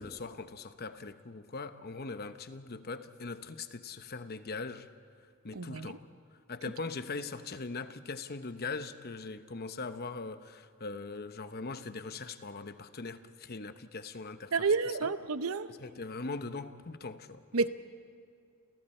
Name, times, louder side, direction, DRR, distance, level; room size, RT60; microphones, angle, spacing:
voice 1, 0.0-4.9 5.4-6.0 6.5-14.7 15.0-15.1 15.7-17.7, left 3 dB, 45° left, 0.9 m, -41 dB
voice 2, 5.5-5.9 14.5-15.7 17.5-17.7, right 4 dB, 80° right, 0.8 m, -29 dB
29.0 x 28.0 x 4.4 m
head